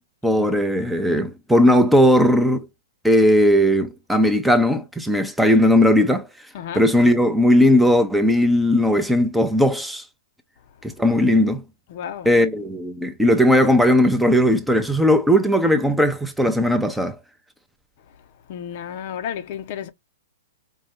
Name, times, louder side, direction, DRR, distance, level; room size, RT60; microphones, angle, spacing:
voice 1, 0.2-2.7 3.0-6.3 6.7-10.0 10.8-11.6 12.3-17.2, left 1 dB, 5° right, 0.6 m, -17 dB
voice 2, 11.9-12.3 18.5-19.9, left 9 dB, 50° left, 0.6 m, -32 dB
4.6 x 2.2 x 3.2 m
figure-of-eight pair, 110°, 0 cm